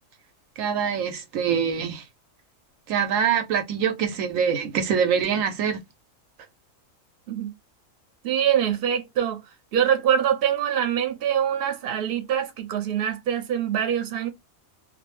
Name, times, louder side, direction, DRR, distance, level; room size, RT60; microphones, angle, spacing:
voice 1, 0.6-2.0 2.9-5.8, right 7 dB, 80° right, 1.0 m, -24 dB
voice 2, 8.2-9.4 9.7-14.3, right 9 dB, 55° right, 0.8 m, -24 dB
2.5 x 2.1 x 3.0 m
omnidirectional pair, 1.4 m